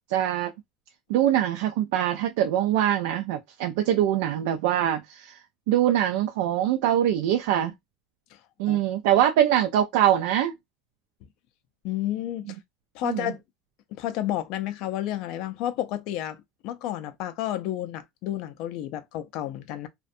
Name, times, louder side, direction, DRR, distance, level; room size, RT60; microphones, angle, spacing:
voice 1, 0.1-0.5 1.1-5.4 5.7-7.7 8.6-10.5 13.0-13.3, right 11 dB, 80° right, 0.3 m, -23 dB
voice 2, 11.8-12.6 12.9-13.4 13.9-19.9, left 12 dB, 55° left, 0.4 m, -31 dB
2.5 x 2.1 x 2.5 m
cardioid pair, 160°, 0 cm